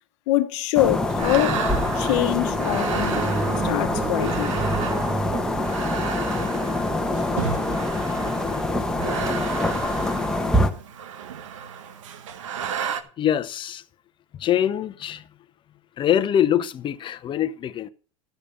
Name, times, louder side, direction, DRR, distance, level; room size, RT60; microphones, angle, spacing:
voice 1, 0.3-1.6 1.9-3.3 3.6-4.5 6.3-6.4, left 15 dB, 70° left, 1.1 m, -24 dB
sound 1, 0.7-10.7, left 2 dB, 5° left, 1.2 m, -25 dB
sound 2, 1.0-13.0, right 8 dB, 90° right, 1.2 m, -33 dB
sound 3, 2.7-7.1, right 4 dB, 25° right, 0.9 m, -31 dB
voice 2, 13.2-13.8 14.3-15.3 16.0-17.9, left 10 dB, 30° left, 0.7 m, -24 dB
13.0 x 5.0 x 6.8 m
supercardioid pair, 120°, 16 cm